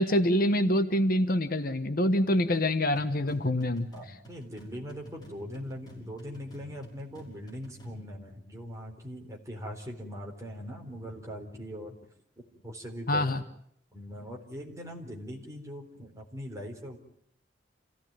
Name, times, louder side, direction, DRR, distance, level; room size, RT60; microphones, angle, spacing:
voice 1, 0.0-3.9 13.1-13.4, left 1 dB, 50° left, 9 dB, 1.2 m, -25 dB
sound 1, 3.0-8.1, right 1 dB, 20° left, 6.0 m, -50 dB
voice 2, 3.9-12.0 12.6-13.3 13.9-17.0, equal, 15° right, 0 dB, 4.0 m, -41 dB
27.5 x 16.5 x 9.0 m, 0.72 s
head